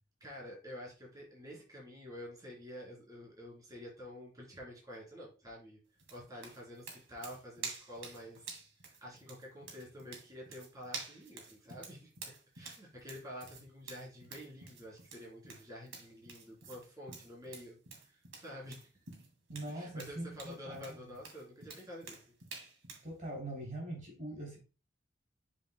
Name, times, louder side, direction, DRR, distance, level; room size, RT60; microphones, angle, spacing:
voice 1, 0.2-5.8 6.1-8.6 9.0-12.1 12.5-17.8 18.0-18.9 19.7-22.2, equal, 20° right, -5 dB, 3.5 m, -49 dB
sound 1, 6.0-23.1, right 4 dB, 90° right, 2.2 m, -49 dB
voice 2, 19.5-21.0 23.0-24.6, right 1 dB, 45° right, -2 dB, 3.3 m, -42 dB
7.2 x 6.9 x 2.2 m, 0.34 s
head